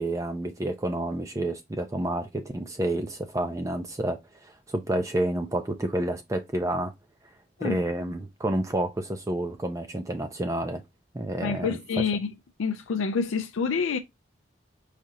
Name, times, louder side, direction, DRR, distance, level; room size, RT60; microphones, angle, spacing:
voice 1, 0.0-6.9 7.6-10.8 11.1-12.0, right 1 dB, 15° right, 0.4 m, -29 dB
voice 2, 11.4-12.3 12.6-14.0, left 5 dB, 85° left, 0.4 m, -27 dB
4.9 x 2.8 x 3.8 m
head